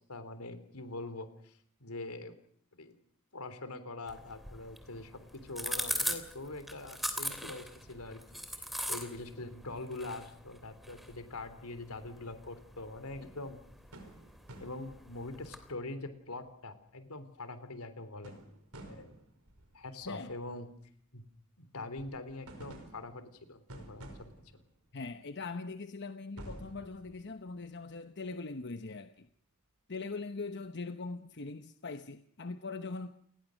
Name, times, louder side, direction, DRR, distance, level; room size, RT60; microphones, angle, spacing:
voice 1, 0.0-2.4 2.7-3.0 3.3-13.6 14.6-18.4 18.8-19.1 19.7-20.7 21.1-21.2 21.6-24.3, left 2 dB, 80° left, 11 dB, 3.4 m, -43 dB
sound 1, 4.1-15.7, equal, ahead, 2.9 m, -41 dB
sound 2, 13.9-15.4 16.1-16.2 16.4-16.7 17.8-17.9 18.2-20.7 22.0-25.1 25.7-25.8 26.4-28.0, right 1 dB, 90° right, 5.1 m, -51 dB
voice 2, 24.9-29.3 29.9-33.3, left 3 dB, 55° left, 9 dB, 1.0 m, -41 dB
29.0 x 20.0 x 6.4 m, 0.63 s
head